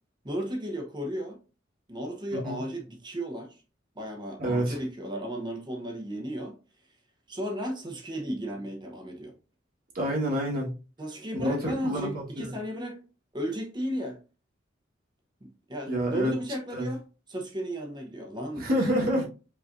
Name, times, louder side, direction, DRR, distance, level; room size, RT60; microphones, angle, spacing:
voice 1, 0.2-1.4 1.9-3.6 4.0-6.6 7.3-9.3 11.0-13.0 13.3-14.2 15.4-17.0 17.3-18.7, equal, 25° right, 0.9 m, -34 dB
voice 2, 2.3-2.6 4.4-4.8 9.9-10.7 11.4-12.5 15.9-16.3 16.7-16.9 18.6-19.3, equal, 50° right, 1.5 m, -28 dB
5.1 x 3.2 x 2.6 m
head